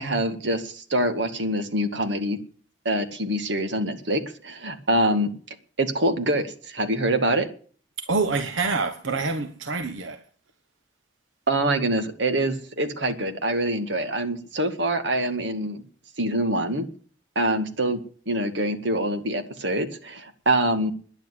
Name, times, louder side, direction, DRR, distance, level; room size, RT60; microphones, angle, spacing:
voice 1, 0.0-2.4 2.9-5.3 5.8-7.5 11.5-15.8 16.2-16.9 17.4-18.0 18.3-20.9, right 1 dB, 70° right, 2.1 m, -25 dB
voice 2, 8.1-10.2, right 4 dB, 90° right, 1.2 m, -26 dB
10.5 x 9.9 x 9.7 m
head